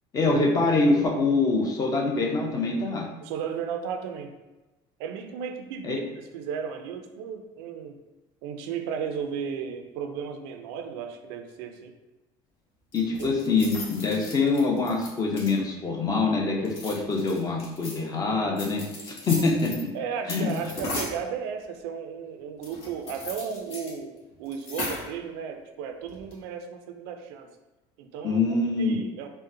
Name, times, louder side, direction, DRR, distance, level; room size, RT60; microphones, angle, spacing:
voice 1, 0.1-3.1 5.8-6.0 12.9-19.9 20.3-20.6 28.2-29.0, left 3 dB, 30° left, 0 dB, 0.6 m, -25 dB
voice 2, 3.2-4.3 5.0-7.9 8.4-11.9 13.2-13.4 19.9-27.5 28.0-29.3, right 7 dB, 85° right, 6 dB, 0.4 m, -35 dB
sound 1, 12.9-15.8 16.6-18.0 18.6-19.8 20.3-21.2 22.6-23.9 24.2-24.3 24.5-25.2 26.1-26.4, left 2 dB, 55° left, 1.0 m, -37 dB
3.8 x 2.0 x 2.6 m, 1.1 s
supercardioid pair, 115°, 12 cm